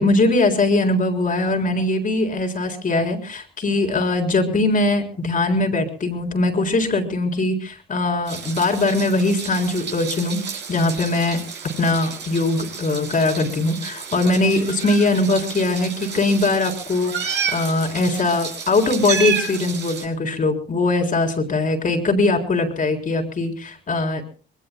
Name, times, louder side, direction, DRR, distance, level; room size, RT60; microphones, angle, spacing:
voice 1, 0.0-11.4 11.8-24.2, left 2 dB, 40° left, 4 dB, 3.9 m, -21 dB
Meow, 8.3-20.0, right 6 dB, 60° right, 5.7 m, -31 dB
26.0 x 21.5 x 2.2 m, 0.38 s
cardioid pair, 90°, 20 cm